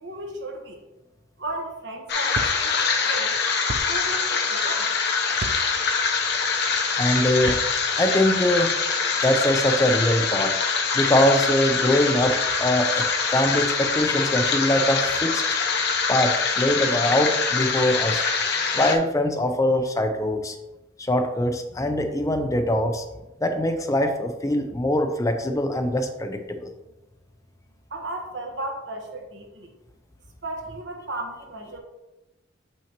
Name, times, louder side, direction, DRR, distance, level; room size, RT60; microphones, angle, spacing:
voice 1, 0.0-0.8 1.4-2.7 3.0-3.4 3.9-4.9 27.9-29.7 30.4-31.8, right 2 dB, 65° right, 3 dB, 1.1 m, -35 dB
sound 1, 2.1-19.0, left 5 dB, 55° left, 0.8 m, -24 dB
sound 2, 2.3-2.5 3.7-3.8 5.4-5.6 7.3-7.7, right 3 dB, 45° right, 0.4 m, -31 dB
voice 2, 7.0-7.6 8.0-8.7 9.2-10.5 10.9-15.4 16.1-18.3 18.7-20.6 21.0-23.0 23.4-26.7, left 1 dB, 15° left, 6 dB, 0.5 m, -23 dB
7.0 x 5.8 x 2.9 m, 1.0 s
head